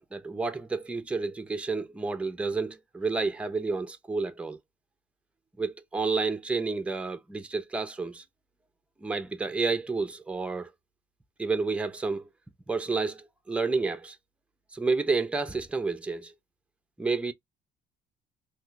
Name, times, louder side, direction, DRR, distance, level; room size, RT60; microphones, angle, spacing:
voice 1, 0.0-4.6 5.6-8.2 9.0-10.7 11.4-12.3 12.7-14.2 14.7-16.3 17.0-17.3, right 4 dB, 5° right, 0.4 m, -30 dB
2.7 x 2.2 x 3.7 m
cardioid pair, 110°, 17 cm